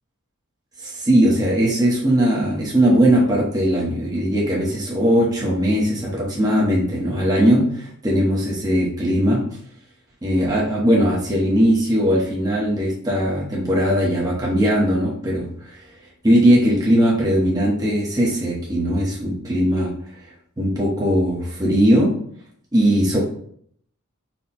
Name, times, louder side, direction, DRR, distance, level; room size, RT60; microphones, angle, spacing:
voice 1, 0.8-9.4 10.2-15.8 16.2-20.0 20.6-22.1 22.7-23.2, equal, 20° right, -5 dB, 0.8 m, -19 dB
4.3 x 2.2 x 4.0 m, 0.62 s
head